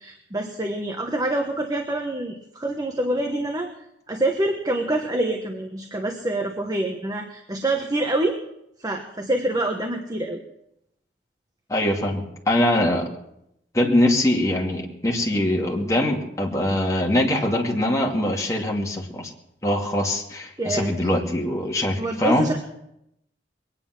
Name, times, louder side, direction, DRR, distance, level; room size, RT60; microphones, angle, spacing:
voice 1, 0.0-3.7 4.1-8.4 8.8-10.4 20.6-21.0 22.0-22.6, right 1 dB, 20° right, 3 dB, 1.2 m, -26 dB
voice 2, 11.7-13.1 13.7-19.3 19.6-22.5, left 1 dB, 20° left, -1 dB, 2.5 m, -23 dB
22.0 x 9.9 x 6.1 m, 0.80 s
head